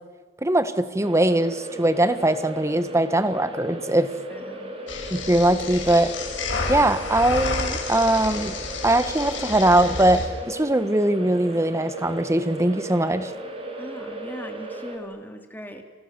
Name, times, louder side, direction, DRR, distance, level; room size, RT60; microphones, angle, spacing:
voice 1, 0.4-4.1 5.1-6.1 6.7-8.6 8.8-13.3, right 1 dB, 15° right, 11 dB, 1.5 m, -21 dB
sound 1, 1.0-15.0, right 1 dB, 30° right, 4.2 m, -36 dB
voice 2, 4.3-4.8 13.8-15.8, equal, 10° left, 4 dB, 3.0 m, -39 dB
sound 2, 4.9-10.3, left 3 dB, 90° left, 6.5 m, -30 dB
29.5 x 28.5 x 7.0 m, 1.3 s
head